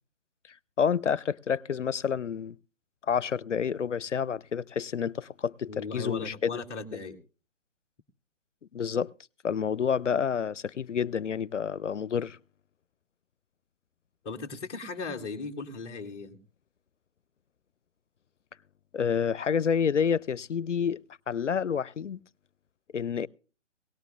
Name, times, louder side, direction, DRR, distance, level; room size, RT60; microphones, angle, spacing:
voice 1, 0.8-2.6 3.1-6.3 8.7-9.1 9.4-12.4 18.9-21.0 21.3-22.2 22.9-23.3, left 7 dB, 70° left, 0.6 m, -28 dB
voice 2, 5.7-7.2 14.2-16.4, left 4 dB, 5° left, 0.7 m, -37 dB
18.0 x 18.0 x 2.4 m
figure-of-eight pair, 145°, 37 cm